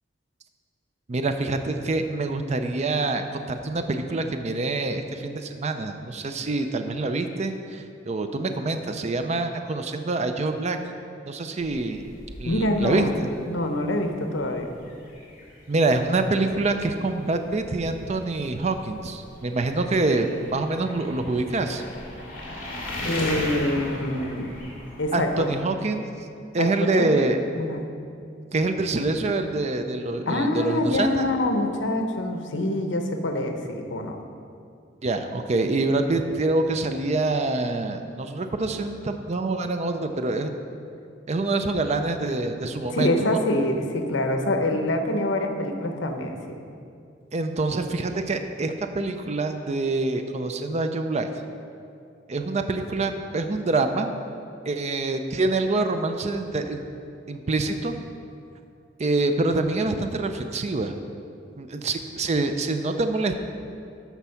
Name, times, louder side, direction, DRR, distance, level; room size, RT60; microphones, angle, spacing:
voice 1, 1.1-10.8 11.3-12.1 12.4-13.3 15.7-21.8 25.1-26.1 26.5-27.4 28.5-31.3 35.0-40.5 41.3-43.4 47.3-51.3 52.3-54.1 54.7-56.8 57.3-57.9 59.0-60.9 61.6-63.3, right 2 dB, 35° right, 7 dB, 0.5 m, -26 dB
sound 1, 11.6-25.6, left 1 dB, 50° left, 2.2 m, -38 dB
voice 2, 12.4-13.1 13.5-14.7 23.0-24.5 25.0-25.5 26.6-27.1 27.6-27.9 30.3-34.2 42.8-46.6, left 1 dB, 75° left, 5 dB, 0.9 m, -25 dB
13.0 x 4.6 x 5.7 m, 2.4 s
head